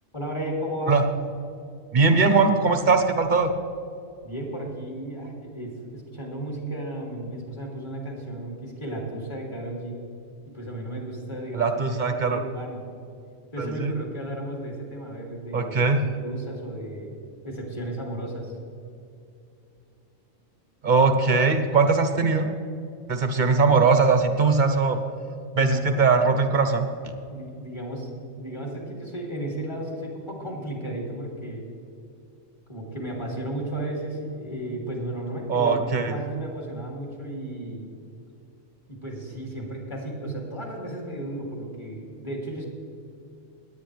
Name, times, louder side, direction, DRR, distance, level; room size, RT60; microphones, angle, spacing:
voice 1, 0.1-1.0 4.2-10.0 10.5-12.8 13.5-17.1 17.4-18.6 25.6-25.8 27.3-31.7 32.7-37.8 38.9-42.7, right 1 dB, 20° left, -3 dB, 2.7 m, -34 dB
voice 2, 1.9-3.5 11.5-12.4 13.6-13.9 15.5-16.0 20.8-22.5 23.1-25.0 25.5-26.9 35.5-36.1, right 4 dB, 40° right, 6 dB, 1.0 m, -20 dB
18.0 x 9.6 x 3.3 m, 2.6 s
omnidirectional pair, 1.4 m